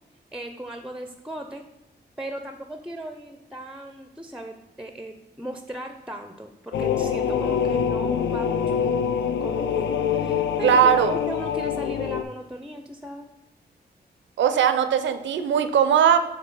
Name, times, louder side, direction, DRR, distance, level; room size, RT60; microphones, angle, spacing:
voice 1, 0.3-1.6 2.2-13.3, right 1 dB, 5° right, 6 dB, 0.4 m, -37 dB
sound 1, 6.7-12.2, left 7 dB, 80° left, 0.4 m, -25 dB
voice 2, 10.6-11.1 14.4-16.2, right 8 dB, 90° right, 10 dB, 0.5 m, -19 dB
6.5 x 3.2 x 5.4 m, 1.0 s
cardioid pair, 90°, 18 cm